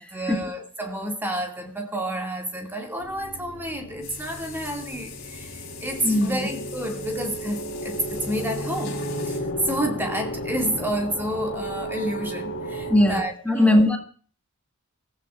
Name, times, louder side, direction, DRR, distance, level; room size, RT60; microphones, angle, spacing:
voice 1, 0.1-13.9, right 1 dB, 10° right, 2.1 m, -30 dB
sound 1, 3.0-13.2, equal, 75° left, 1.3 m, -34 dB
sound 2, 4.0-9.4, left 7 dB, 45° left, 4.9 m, -43 dB
voice 2, 6.0-6.4 12.9-14.0, left 1 dB, 5° left, 1.6 m, -19 dB
27.0 x 15.0 x 2.4 m
head